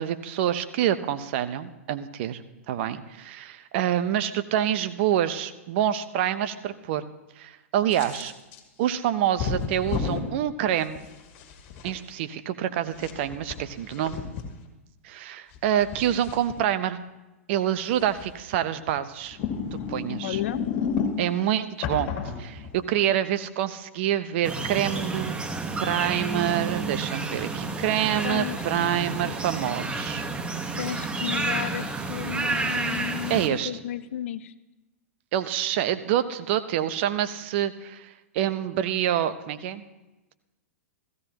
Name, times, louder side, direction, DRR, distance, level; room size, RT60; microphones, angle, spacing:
voice 1, 0.0-2.4 2.7-7.1 7.4-8.3 8.8-11.0 11.8-14.2 15.0-17.0 17.5-19.4 19.7-20.4 21.2-22.1 22.4-25.3 25.8-30.3 33.3-33.7 35.3-39.8, right 11 dB, 55° right, 11 dB, 0.9 m, -27 dB
sound 1, 7.9-8.6 9.4-10.3 11.0-11.9 12.9-14.4 15.5-16.5 18.0-18.4 19.3-21.4 21.8-23.0, left 6 dB, 45° left, 2.4 m, -31 dB
voice 2, 20.2-20.6 28.2-28.7 30.7-34.5, left 11 dB, 65° left, 14 dB, 0.7 m, -33 dB
sound 2, 24.4-33.5, right 3 dB, 15° right, 1.3 m, -30 dB
15.5 x 15.0 x 3.0 m, 1.1 s
hypercardioid pair, 110°, 8 cm